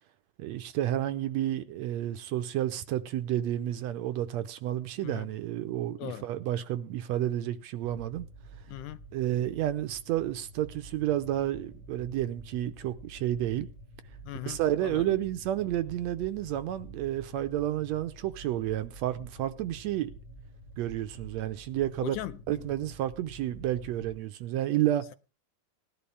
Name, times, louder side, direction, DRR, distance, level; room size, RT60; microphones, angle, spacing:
voice 1, 0.4-8.3 9.1-13.7 14.4-20.1 20.8-22.2 22.5-25.1, right 13 dB, 75° right, 1.9 m, -31 dB
sound 1, 7.8-24.2, right 1 dB, 70° left, 0.5 m, -49 dB
voice 2, 8.7-9.0 14.3-15.2 22.0-22.7, left 14 dB, 85° left, 2.3 m, -39 dB
18.5 x 11.5 x 3.4 m
omnidirectional pair, 3.4 m